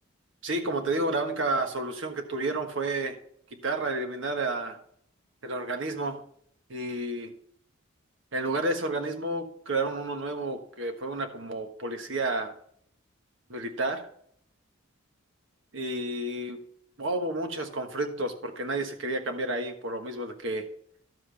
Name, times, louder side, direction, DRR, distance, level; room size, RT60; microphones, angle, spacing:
voice 1, 0.4-3.2 3.5-4.8 5.4-6.2 6.7-7.3 8.3-12.5 13.5-14.1 15.7-16.6 17.0-20.6, right 2 dB, 60° right, 5 dB, 1.4 m, -31 dB
12.0 x 7.5 x 3.4 m, 0.64 s
head